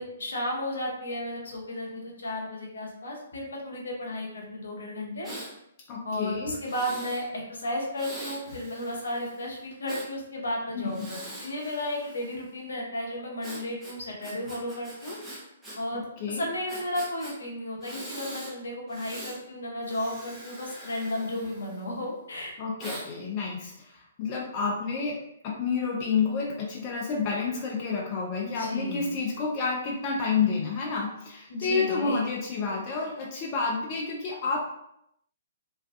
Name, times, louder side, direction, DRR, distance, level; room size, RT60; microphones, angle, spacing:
voice 1, 0.0-5.3 6.0-15.2 15.8-22.5 28.4-29.1 31.5-32.3, left 1 dB, 75° left, -1 dB, 0.7 m, -34 dB
Breathing, 5.2-5.5 6.6-7.3 8.0-10.1 10.9-12.5 13.4-15.8 16.0-16.1 16.7-17.3 17.8-18.5 18.9-19.4 19.8-22.0 22.8-23.1, right 1 dB, 5° right, 0.7 m, -42 dB
voice 2, 5.9-6.5 10.7-11.1 15.9-16.4 22.6-34.7, left 5 dB, 35° left, -2 dB, 0.5 m, -30 dB
2.5 x 2.2 x 2.4 m, 0.77 s
figure-of-eight pair, 130°, 0 cm